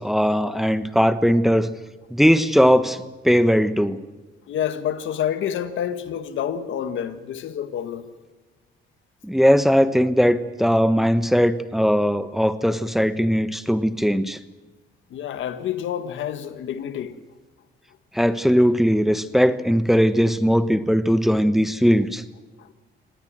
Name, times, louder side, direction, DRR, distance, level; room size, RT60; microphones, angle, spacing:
voice 1, 0.0-1.7 2.1-4.0 9.2-14.4 18.1-22.2, equal, ahead, 1.2 m, -19 dB
voice 2, 4.5-8.1 15.1-17.2 22.6-22.7, left 9 dB, 75° left, 1.7 m, -28 dB
26.0 x 19.0 x 7.7 m
cardioid pair, 90°, 20 cm